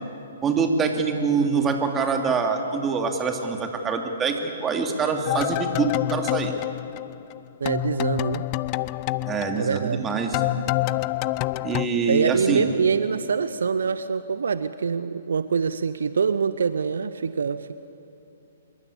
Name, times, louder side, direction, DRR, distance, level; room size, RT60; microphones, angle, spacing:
voice 1, 0.4-6.6 9.3-10.4 11.6-12.7, right 5 dB, 15° right, 4 dB, 2.8 m, -25 dB
voice 2, 1.3-1.7 7.6-8.4 9.6-10.0 12.1-17.7, right 6 dB, 65° right, 13 dB, 0.8 m, -25 dB
sound 1, 5.3-7.4 7.7-11.9, left 19 dB, 35° left, 0.6 m, -27 dB
26.5 x 22.5 x 8.5 m, 2.9 s
figure-of-eight pair, 120°, 0 cm